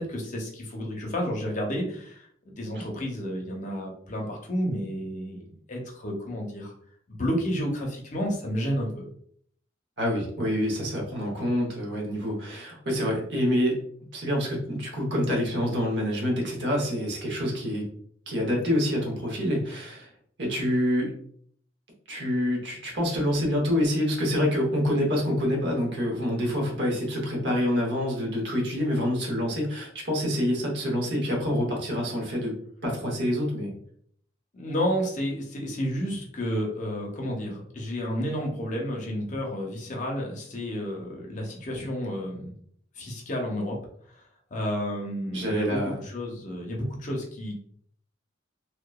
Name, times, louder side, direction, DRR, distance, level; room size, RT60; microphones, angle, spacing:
voice 1, 0.0-2.3 2.6-6.7 7.1-9.1 34.5-42.5 43.0-43.8 44.5-47.6, equal, 40° left, 0 dB, 0.6 m, -31 dB
voice 2, 10.0-13.8 14.1-17.8 18.3-20.1 20.4-21.1 22.1-32.5 32.8-33.8 45.3-46.0, equal, 65° right, -1 dB, 0.9 m, -27 dB
2.8 x 2.2 x 2.2 m, 0.62 s
head